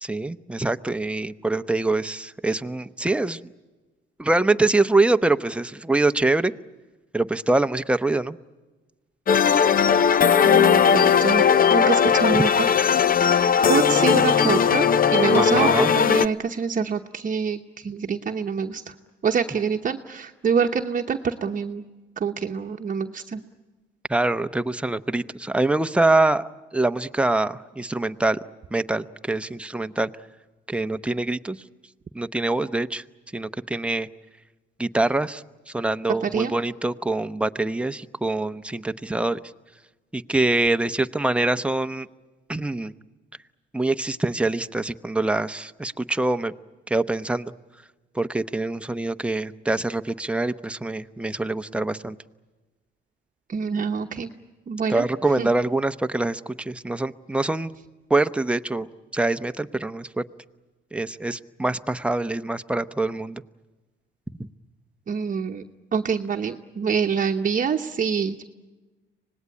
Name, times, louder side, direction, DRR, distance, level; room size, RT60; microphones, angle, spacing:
voice 1, 0.0-3.4 4.2-6.5 7.1-8.4 12.3-12.4 15.3-15.9 24.1-26.4 26.7-28.4 28.7-30.1 30.7-31.6 32.1-33.0 33.3-34.1 34.8-35.4 35.7-39.4 40.1-42.1 42.5-42.9 43.7-46.5 46.9-47.5 48.1-52.2 54.9-57.7 58.1-58.9 59.1-60.2 60.9-63.4, right 2 dB, 5° right, 9 dB, 0.8 m, -24 dB
sound 1, 9.3-16.3, left 7 dB, 45° left, 0.8 m, -18 dB
voice 2, 10.4-12.7 13.2-18.9 19.2-21.8 22.2-23.4 36.2-36.5 53.5-54.3 54.7-55.0 55.4-55.5 65.1-65.6 65.9-68.4, right 6 dB, 40° right, 4 dB, 1.0 m, -26 dB
25.5 x 19.5 x 9.9 m, 1.2 s
cardioid pair, 90°, 20 cm